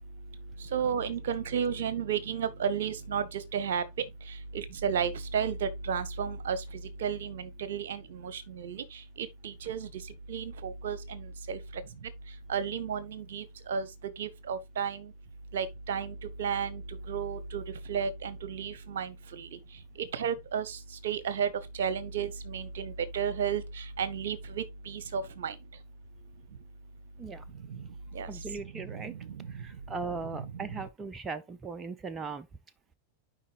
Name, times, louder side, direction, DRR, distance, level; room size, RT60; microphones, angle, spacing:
voice 1, 0.6-15.1 15.5-25.6 27.5-28.3 28.6-29.8 30.4-30.7, right 7 dB, 60° right, 0.9 m, -34 dB
voice 2, 28.3-29.1 29.5-32.5, right 4 dB, 20° right, 0.6 m, -38 dB
11.5 x 5.0 x 2.4 m
figure-of-eight pair, 90°, 0 cm